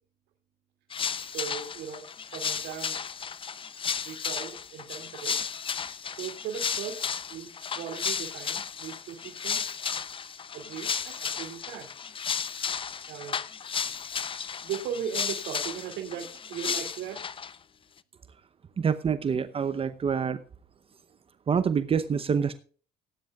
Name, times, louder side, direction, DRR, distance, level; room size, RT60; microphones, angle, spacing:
sound 1, 0.9-17.6, left 7 dB, 30° left, 0.7 m, -34 dB
voice 1, 1.3-3.0 3.8-5.5 6.1-7.0 7.3-10.0 10.5-11.9 13.1-13.4 14.6-17.2, right 8 dB, 85° right, 1 dB, 2.7 m, -38 dB
voice 2, 18.8-20.4 21.5-22.6, right 6 dB, 35° right, 13 dB, 0.8 m, -26 dB
18.0 x 10.5 x 2.4 m, 0.40 s
cardioid pair, 110°, 17 cm